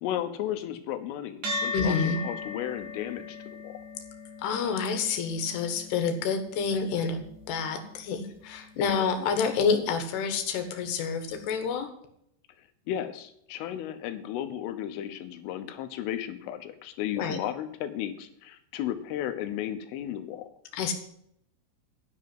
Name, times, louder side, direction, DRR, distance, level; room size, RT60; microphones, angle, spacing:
voice 1, 0.0-2.0 2.2-3.8 12.9-20.5, left 11 dB, 80° left, 10 dB, 3.5 m, -34 dB
sound 1, 1.4-10.1, left 3 dB, 45° right, 4.5 m, -39 dB
voice 2, 1.7-2.2 4.4-11.9 17.2-17.4 20.7-20.9, left 5 dB, 65° left, 7 dB, 3.2 m, -28 dB
11.0 x 6.4 x 7.7 m, 0.73 s
omnidirectional pair, 5.8 m